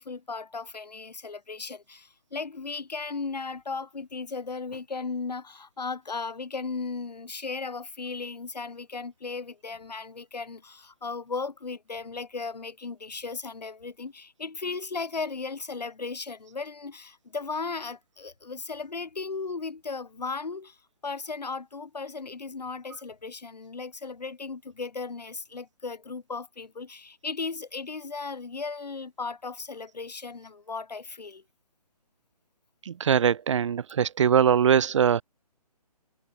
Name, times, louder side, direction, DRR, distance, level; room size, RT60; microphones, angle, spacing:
voice 1, 0.0-20.8 21.0-31.4, left 4 dB, 80° left, 4.5 m, -36 dB
voice 2, 32.9-35.2, right 8 dB, 45° right, 2.3 m, -22 dB
hypercardioid pair, 155°, 21 cm